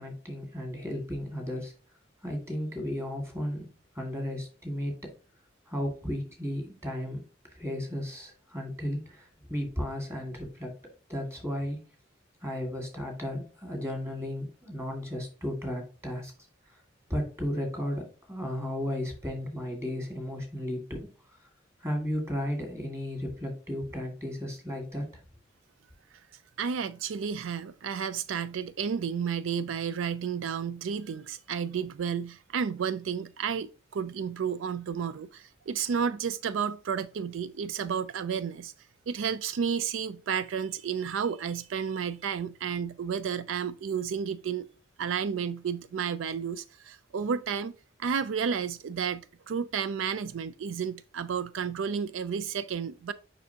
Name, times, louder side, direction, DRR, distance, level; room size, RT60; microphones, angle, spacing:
voice 1, 0.0-1.7 2.2-3.7 4.0-5.1 5.7-7.2 7.5-10.8 11.1-11.8 12.4-16.3 16.7-16.8 17.1-21.1 21.8-25.2, equal, 15° right, 2.0 m, -34 dB
voice 2, 26.6-38.7 39.1-44.7 45.0-47.7 48.0-53.1, right 7 dB, 85° right, 0.4 m, -32 dB
6.8 x 5.3 x 2.8 m
head